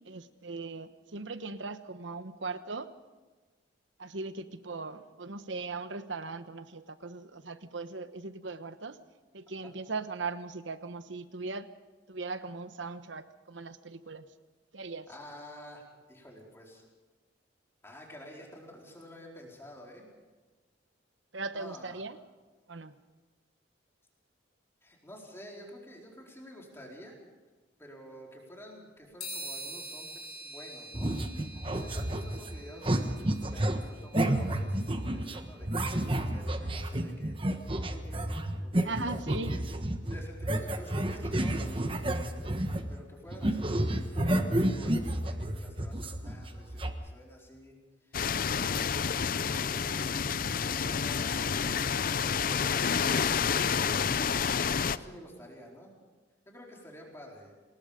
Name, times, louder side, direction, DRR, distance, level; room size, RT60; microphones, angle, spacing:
voice 1, 0.1-2.9 4.0-9.0 9.3-11.7 12.1-14.2 14.7-15.1 21.3-22.2 22.7-22.9 38.8-39.7, right 3 dB, 80° right, 11 dB, 1.1 m, -39 dB
voice 2, 15.1-16.8 17.8-20.1 21.5-22.0 24.8-27.2 27.8-31.1 31.5-37.3 37.7-39.0 39.2-39.4 40.0-42.4 42.9-54.1 54.7-55.9 56.5-57.5, equal, 15° left, -1 dB, 4.5 m, -50 dB
sound 1, 29.2-36.9, equal, 30° left, 7.8 m, -46 dB
sound 2, 30.9-43.0 43.3-46.9, right 1 dB, 30° right, 1.3 m, -31 dB
sound 3, 48.1-55.0, left 6 dB, 50° left, 0.5 m, -29 dB
27.0 x 20.0 x 5.2 m, 1.3 s
head